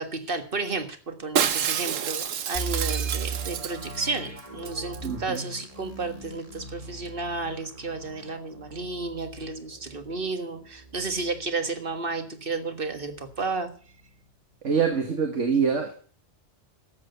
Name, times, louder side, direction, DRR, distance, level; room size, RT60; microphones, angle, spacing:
voice 1, 0.0-13.7, right 3 dB, 45° right, 7 dB, 1.8 m, -32 dB
Shatter, 1.4-4.1 4.4-4.5 4.7-5.1 5.3-5.4, right 8 dB, 90° right, 1.2 m, -28 dB
sound 1, 2.5-12.3 12.6-12.7 13.2-13.5, right 4 dB, 30° right, 2.1 m, -38 dB
voice 2, 5.0-5.4 14.6-15.9, right 6 dB, 70° right, 4 dB, 2.0 m, -25 dB
12.5 x 8.1 x 8.1 m, 0.44 s
omnidirectional pair, 1.3 m